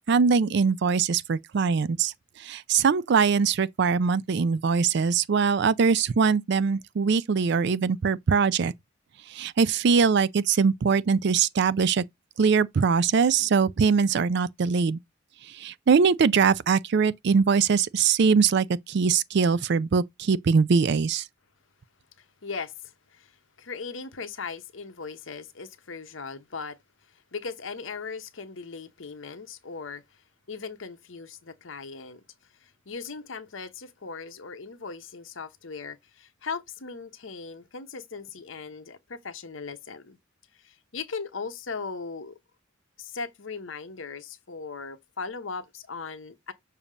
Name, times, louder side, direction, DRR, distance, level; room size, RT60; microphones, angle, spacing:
voice 1, 0.1-2.1 2.4-8.7 9.3-12.0 12.4-15.0 15.6-21.2, right 5 dB, 55° right, 0.4 m, -22 dB
voice 2, 22.2-23.3 23.6-26.8 27.3-30.0 30.5-32.2 32.6-40.2 40.6-42.4 43.0-46.5, left 5 dB, 75° left, 0.9 m, -38 dB
7.1 x 2.8 x 5.0 m
head